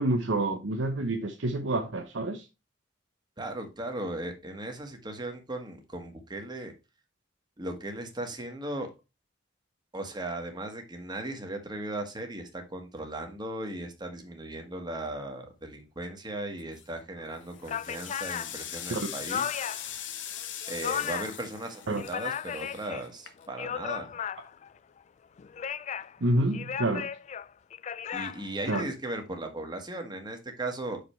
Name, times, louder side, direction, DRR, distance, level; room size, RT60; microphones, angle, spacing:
voice 1, 0.0-2.5 18.9-19.1 21.9-22.0 26.2-27.1 28.7-28.9, right 2 dB, 85° right, 0.9 m, -28 dB
voice 2, 3.4-6.7 7.6-8.9 9.9-19.4 20.7-24.2 28.1-31.0, right 1 dB, 25° right, 1.5 m, -37 dB
sound 1, 16.6-17.0 17.5-23.7, left 10 dB, 80° left, 1.0 m, -41 dB
sound 2, 17.2-17.3 17.6-20.0 20.3-21.4 21.8-23.0 23.4-24.7 25.4-26.2 26.5-28.8, left 8 dB, 40° left, 0.3 m, -35 dB
6.2 x 5.2 x 4.4 m
head